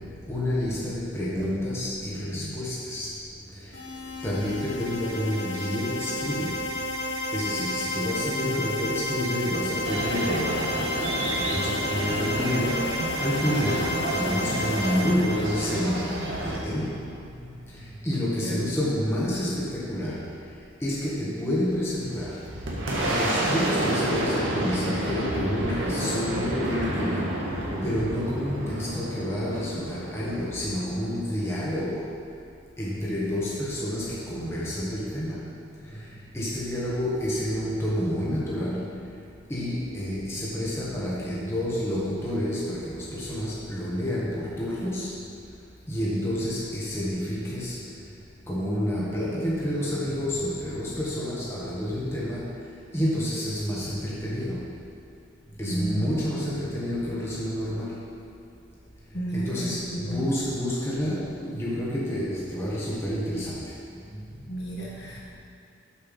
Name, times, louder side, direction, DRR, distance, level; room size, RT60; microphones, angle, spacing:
voice 1, 0.3-3.1 4.2-6.6 7.3-16.1 16.4-17.0 18.0-20.2 20.8-22.3 23.1-27.3 27.8-32.0 32.8-35.5 36.3-38.9 39.5-45.1 45.9-47.8 48.5-52.5 52.9-54.6 55.6-58.0 59.3-59.8 60.1-63.6, equal, 15° left, -7 dB, 1.3 m, -29 dB
sound 1, 3.7-16.4, left 1 dB, 80° left, 1.7 m, -32 dB
sound 2, 9.8-16.6, right 1 dB, 70° right, 1.1 m, -31 dB
Boom, 22.0-31.4, right 1 dB, 90° right, 1.6 m, -29 dB
voice 2, 55.6-56.1 59.1-60.3 64.5-65.4, right 1 dB, 60° left, -5 dB, 1.8 m, -32 dB
7.2 x 6.7 x 5.4 m, 2.7 s
head